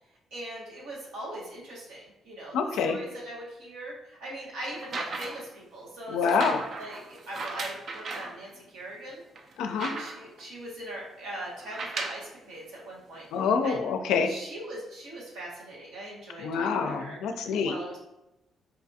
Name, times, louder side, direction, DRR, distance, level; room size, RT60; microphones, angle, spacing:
voice 1, 0.3-2.6 2.8-9.2 9.7-13.2 13.6-13.8 14.3-17.2 17.6-18.0, right 1 dB, 90° right, -4 dB, 1.2 m, -41 dB
voice 2, 2.5-3.0 6.1-6.6 9.6-9.9 13.3-14.3 16.4-17.8, left 5 dB, 85° left, 5 dB, 0.4 m, -26 dB
sound 1, 4.7-5.5 6.2-8.4 8.9-9.0 9.3-10.4 11.6-12.3 13.2-13.3, right 3 dB, 55° right, 0.4 m, -36 dB
4.4 x 2.4 x 2.6 m, 0.92 s
cardioid pair, 90°, 0 cm